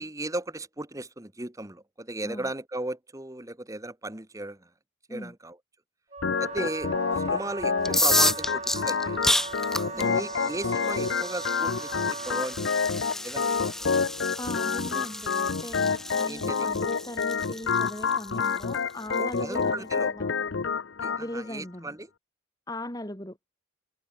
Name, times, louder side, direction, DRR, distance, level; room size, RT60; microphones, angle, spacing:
voice 1, 0.0-4.7 5.1-5.6 6.4-9.4 10.0-13.9 16.3-16.8 19.2-20.1 21.0-22.1, right 2 dB, 15° right, 1.4 m, -36 dB
Wind instrument woodwind instrument, 6.1-12.6, right 4 dB, 35° right, 7.9 m, -38 dB
Organ, 6.2-21.2, left 5 dB, 70° left, 0.6 m, -28 dB
sound 1, 7.8-19.5, left 1 dB, ahead, 0.5 m, -31 dB
voice 2, 9.9-10.2 14.4-20.3 21.2-21.9 22.7-23.4, left 1 dB, 20° left, 3.2 m, -39 dB
head